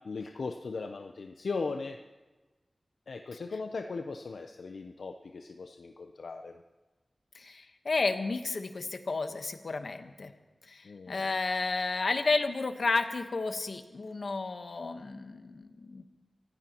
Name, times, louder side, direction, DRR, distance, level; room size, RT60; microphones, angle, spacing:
voice 1, 0.0-2.0 3.1-6.6 10.8-11.4, left 4 dB, 90° left, 5 dB, 0.6 m, -38 dB
voice 2, 7.3-10.3 10.7-16.1, left 3 dB, 70° left, 7 dB, 1.1 m, -32 dB
24.5 x 15.0 x 3.0 m, 1.2 s
wide cardioid pair, 75°, 0 cm